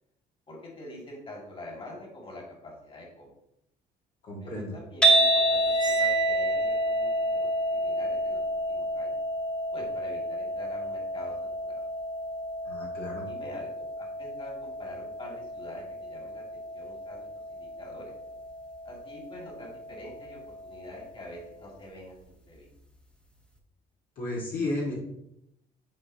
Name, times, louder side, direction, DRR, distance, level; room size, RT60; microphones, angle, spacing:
voice 1, 0.5-3.3 4.4-9.2 9.7-11.9 13.3-18.1 18.8-22.7, left 1 dB, 35° left, -1 dB, 2.2 m, -45 dB
voice 2, 4.2-4.7 12.6-13.2 24.1-24.9, left 2 dB, 60° left, -4 dB, 1.7 m, -33 dB
sound 1, 5.0-21.2, right 1 dB, 5° left, 1.0 m, -30 dB
Cymbal, 5.7-7.1, right 11 dB, 25° right, 1.5 m, -32 dB
9.6 x 4.0 x 2.8 m, 0.79 s
cardioid pair, 105°, 16 cm